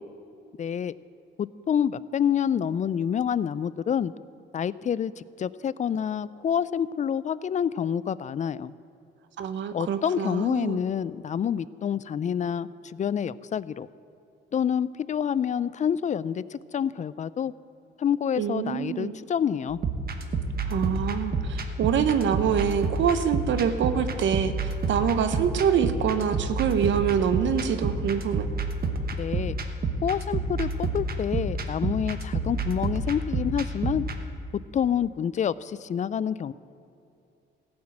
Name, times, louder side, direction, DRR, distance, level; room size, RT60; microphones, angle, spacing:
voice 1, 0.6-0.9 1.4-4.1 4.5-8.7 9.7-13.9 14.5-17.5 18.0-19.8 29.2-29.6 30.0-34.1 34.7-36.5, left 8 dB, 40° left, 18 dB, 0.4 m, -27 dB
voice 2, 9.4-10.8 18.4-19.1 20.7-28.5, right 8 dB, 70° right, 10 dB, 0.7 m, -25 dB
sound 1, 19.7-34.2, right 3 dB, 50° right, 1.2 m, -29 dB
15.0 x 6.1 x 8.7 m, 2.7 s
cardioid pair, 90°, 20 cm